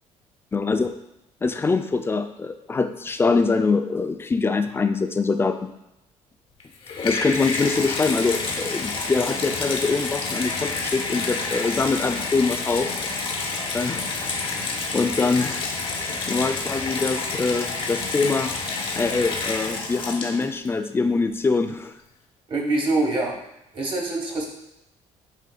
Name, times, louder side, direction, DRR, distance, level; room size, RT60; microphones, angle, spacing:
voice 1, 0.5-1.0 1.4-5.6 7.0-12.9 13.7-14.1 14.5-18.5 19.0-21.9, left 4 dB, 20° left, 8 dB, 0.3 m, -24 dB
Water tap faucet / Bathtub (filling or washing), 6.6-20.7 21.4-21.5, left 3 dB, 45° left, 0.7 m, -29 dB
voice 2, 22.5-23.3 23.7-24.5, right 2 dB, 45° right, -1 dB, 1.2 m, -24 dB
7.5 x 2.6 x 2.2 m, 0.88 s
cardioid pair, 100°, 13 cm